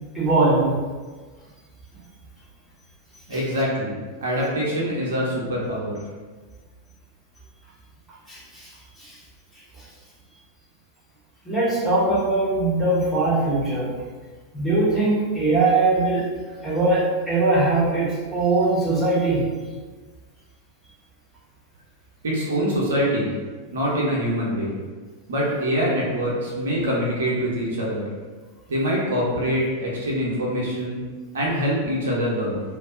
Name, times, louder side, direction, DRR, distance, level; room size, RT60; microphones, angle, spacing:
voice 1, 0.1-0.8 3.3-3.4 8.3-8.7 9.0-9.2 9.7-9.9 11.4-14.0 14.5-16.3 16.6-19.5, right 2 dB, 5° left, -9 dB, 1.1 m, -21 dB
voice 2, 3.3-5.9 22.2-23.3 23.7-24.7 25.3-28.0 28.7-31.0 31.3-32.6, equal, 65° right, -4 dB, 0.7 m, -24 dB
2.5 x 2.2 x 3.7 m, 1.4 s
figure-of-eight pair, 90°, 0 cm